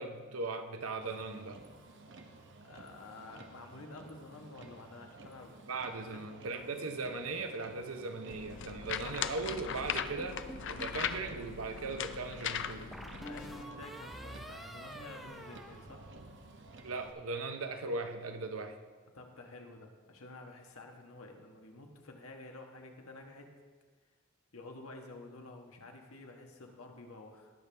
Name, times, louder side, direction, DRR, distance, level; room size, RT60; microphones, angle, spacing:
voice 1, 0.0-1.6 5.7-10.4 10.7-12.9 16.8-18.8, right 3 dB, 90° right, 6 dB, 0.9 m, -38 dB
Motor vehicle (road), 1.0-17.1, right 2 dB, 60° right, 0.9 m, -54 dB
voice 2, 2.6-5.5 5.9-6.2 13.2-16.0 19.1-23.5 24.5-27.5, left 2 dB, 85° left, 3 dB, 1.4 m, -50 dB
sound 1, 8.3-13.6, left 8 dB, 60° left, 0.5 m, -39 dB
sound 2, 10.2-11.0 12.9-16.5, equal, ahead, 0.7 m, -47 dB
19.0 x 7.0 x 3.4 m, 1.5 s
head